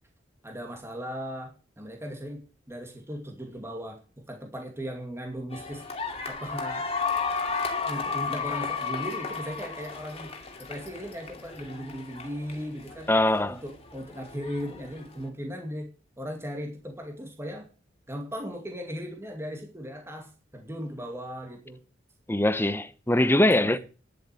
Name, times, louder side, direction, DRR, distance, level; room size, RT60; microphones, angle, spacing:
voice 1, 0.4-5.8 6.3-6.9 7.8-10.3 10.6-13.1 13.5-15.9 16.2-17.7 18.1-21.8 23.5-23.8, equal, 15° right, 2.3 m, -37 dB
sound 1, 5.5-15.3, left 5 dB, 35° left, 2.6 m, -34 dB
voice 2, 13.1-13.6 22.3-23.8, left 1 dB, 10° left, 0.8 m, -22 dB
10.5 x 8.0 x 7.7 m
head